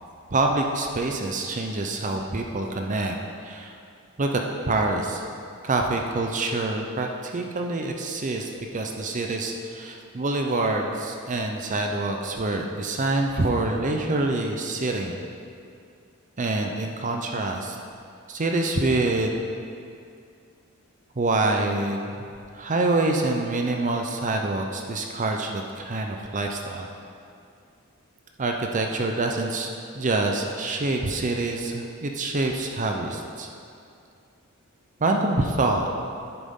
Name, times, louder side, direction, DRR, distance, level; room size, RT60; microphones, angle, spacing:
voice 1, 0.3-3.2 3.4-3.8 4.2-5.2 5.6-15.2 16.4-17.8 18.3-19.5 21.2-22.3 22.5-26.9 28.4-29.7 29.9-33.5 35.0-35.9, right 2 dB, 35° right, 2 dB, 0.6 m, -26 dB
10.0 x 8.9 x 3.7 m, 2.4 s
head